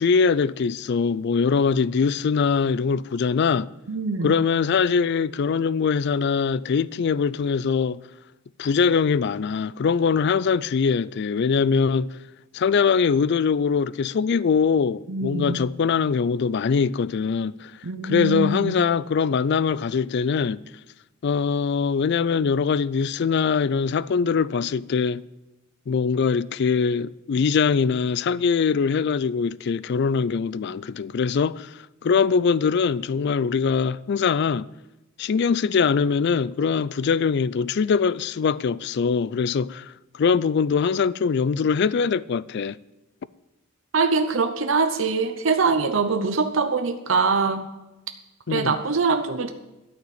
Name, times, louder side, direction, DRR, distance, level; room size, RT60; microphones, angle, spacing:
voice 1, 0.0-3.7 4.2-8.0 8.6-12.1 12.5-17.7 18.0-20.6 21.2-25.2 25.9-34.7 35.2-42.8 48.5-48.7, left 5 dB, 55° left, 0.4 m, -22 dB
voice 2, 3.9-4.4 15.1-15.6 17.8-18.8 43.9-47.7 48.5-49.5, right 4 dB, 65° right, 0.8 m, -23 dB
13.0 x 5.8 x 9.2 m
head